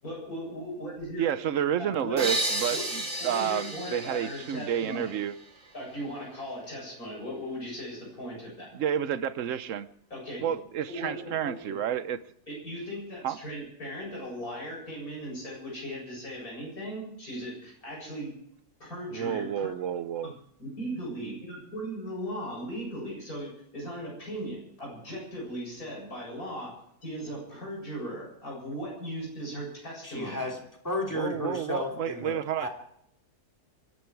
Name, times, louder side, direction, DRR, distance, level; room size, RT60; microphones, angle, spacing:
voice 1, 0.0-1.2 1.8-2.3 2.7-2.8 3.3-5.1 5.7-8.7 10.1-10.6 10.9-11.8 12.5-18.3 18.8-19.7 20.2-20.3 20.6-26.7 27.0-30.4, equal, 65° left, -3 dB, 8.3 m, -38 dB
voice 2, 1.2-5.3 8.7-9.9 10.4-12.2 13.2-13.4 19.1-20.3 31.1-32.7, right 9 dB, 60° right, 14 dB, 1.1 m, -30 dB
sound 1, 2.2-5.7, right 2 dB, 40° right, 3.1 m, -33 dB
voice 3, 30.0-32.3 32.6-32.7, left 2 dB, 10° left, 0 dB, 3.0 m, -33 dB
25.5 x 10.5 x 4.7 m, 0.71 s
omnidirectional pair, 1.6 m